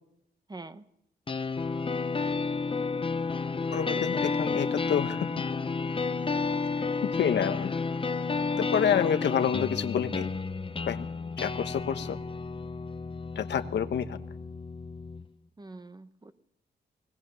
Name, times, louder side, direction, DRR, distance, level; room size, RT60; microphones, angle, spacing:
voice 1, 0.5-0.8 3.9-4.1 15.6-16.3, right 3 dB, 20° right, 11 dB, 1.1 m, -44 dB
sound 1, 1.3-15.3, left 4 dB, 30° left, 0.9 m, -31 dB
voice 2, 3.7-5.3 7.0-7.7 8.6-10.3 10.9-11.1 11.4-12.2 13.3-14.2, left 8 dB, 80° left, 10 dB, 1.2 m, -28 dB
20.0 x 19.5 x 7.0 m, 0.79 s
cardioid pair, 100°, 18 cm